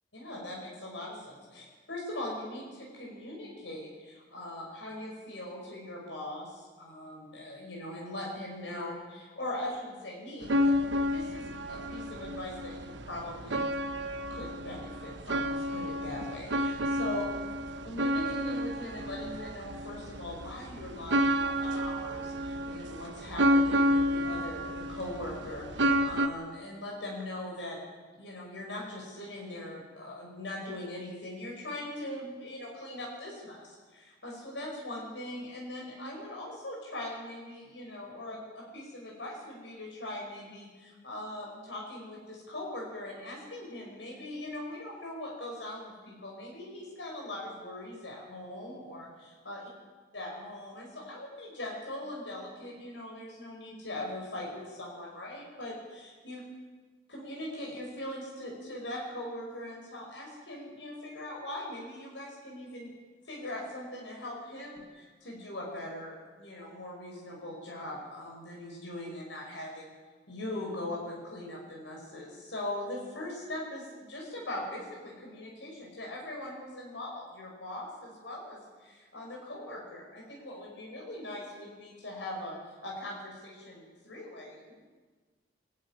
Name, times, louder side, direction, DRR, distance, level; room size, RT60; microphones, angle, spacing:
voice 1, 0.1-10.7 11.1-13.7 14.3-17.3 17.8-27.8 28.2-49.7 50.1-56.4 57.1-62.9 63.3-69.9 70.3-82.6 82.8-84.7, left 1 dB, 85° left, -2 dB, 5.5 m, -41 dB
sound 1, 10.4-26.3, equal, 80° right, 1.2 m, -30 dB
22.0 x 12.0 x 9.9 m, 1.4 s
head